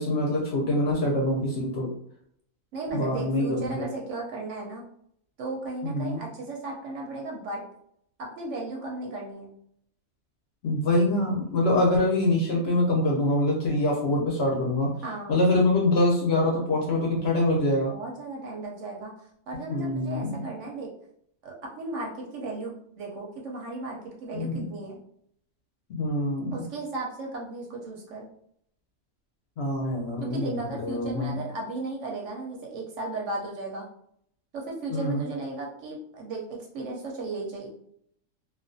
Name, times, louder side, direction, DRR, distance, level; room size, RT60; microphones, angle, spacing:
voice 1, 0.0-1.9 2.9-3.9 5.8-6.2 10.6-15.0 15.3-17.9 19.7-20.4 24.3-24.7 25.9-26.6 29.6-31.3 34.9-35.2, left 1 dB, 60° left, -2 dB, 0.7 m, -25 dB
voice 2, 2.7-4.8 5.4-7.6 8.2-9.5 15.0-15.4 17.9-19.1 19.5-20.9 21.4-25.0 26.5-28.3 30.2-33.9 34.5-37.7, right 2 dB, 70° right, -1 dB, 0.8 m, -35 dB
2.4 x 2.2 x 2.5 m, 0.68 s
omnidirectional pair, 1.5 m